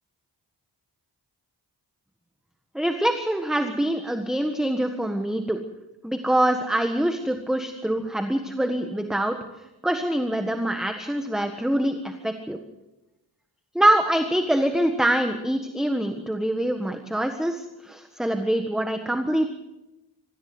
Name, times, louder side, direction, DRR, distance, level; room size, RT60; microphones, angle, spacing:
voice 1, 2.7-5.6 6.0-9.4 9.8-12.6 13.7-19.5, right 1 dB, ahead, 6 dB, 1.5 m, -24 dB
24.5 x 15.0 x 7.8 m, 1.0 s
wide cardioid pair, 95°, 43 cm